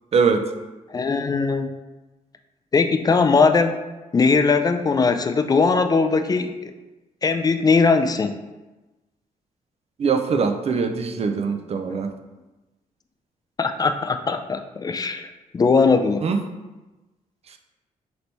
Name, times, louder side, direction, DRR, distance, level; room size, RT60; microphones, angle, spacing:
voice 1, 0.1-0.5 10.0-12.1 16.2-16.4, right 5 dB, 45° right, 6 dB, 0.4 m, -22 dB
voice 2, 0.9-1.7 2.7-3.8 4.1-6.7 7.2-8.4 11.9-12.0 13.6-15.3 15.5-16.3, left 4 dB, 25° left, 7 dB, 0.3 m, -20 dB
3.3 x 3.0 x 4.0 m, 1.1 s
cardioid pair, 90°, 14 cm